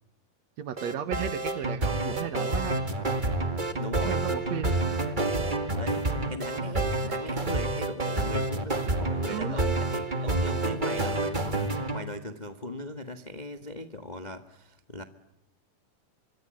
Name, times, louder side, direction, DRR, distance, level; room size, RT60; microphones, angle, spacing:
voice 1, 0.6-2.8 4.0-4.7 9.3-9.7, right 9 dB, 65° right, 14 dB, 2.2 m, -34 dB
sound 1, 0.8-12.0, right 2 dB, 20° right, 1.5 m, -28 dB
voice 2, 3.8-4.2 4.7-5.2 5.7-11.6 11.9-15.0, left 1 dB, 35° left, 8 dB, 0.7 m, -39 dB
25.5 x 25.0 x 8.9 m, 0.81 s
omnidirectional pair, 3.8 m